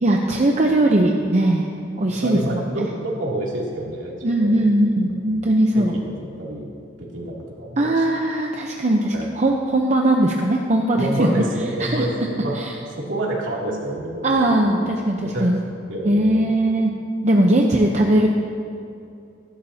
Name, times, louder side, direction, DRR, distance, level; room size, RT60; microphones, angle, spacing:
voice 1, 0.0-1.7 2.0-2.9 4.2-5.9 7.8-11.4 11.8-12.1 12.6-12.7 14.2-15.6 16.0-16.9 17.2-18.3, right 1 dB, 40° right, 0 dB, 0.8 m, -19 dB
voice 2, 0.7-1.1 2.2-4.8 5.3-5.5 5.7-6.7 7.0-8.1 9.1-9.3 11.0-12.6 13.0-14.9 15.3-15.5 15.9-16.5, right 1 dB, 85° right, -4 dB, 2.9 m, -28 dB
22.5 x 11.5 x 2.8 m, 2.6 s
head